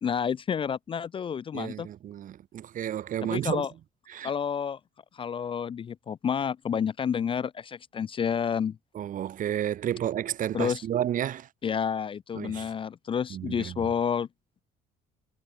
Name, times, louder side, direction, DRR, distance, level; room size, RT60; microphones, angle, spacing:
voice 1, 0.0-1.9 3.2-3.7 4.2-4.8 5.1-8.8 10.5-10.9 11.6-14.3, left 7 dB, 30° left, 0.4 m, -29 dB
voice 2, 1.5-3.6 4.1-4.3 8.9-11.5 12.4-12.6 13.3-13.7, right 11 dB, 50° right, 1.0 m, -31 dB
cardioid pair, 110°, 17 cm